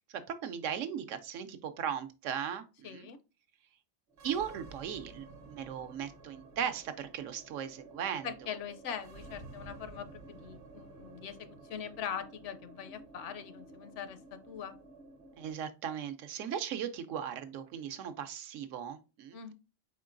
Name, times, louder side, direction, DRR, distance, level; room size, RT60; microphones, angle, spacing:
voice 1, 0.3-3.1 4.2-8.3 15.4-19.4, right 8 dB, 75° right, 0.9 m, -37 dB
voice 2, 2.8-3.2 8.2-14.8 19.3-19.5, left 8 dB, 70° left, 0.9 m, -42 dB
sound 1, 4.1-15.6, right 3 dB, 50° right, 0.9 m, -52 dB
4.5 x 4.3 x 2.5 m
omnidirectional pair, 1.4 m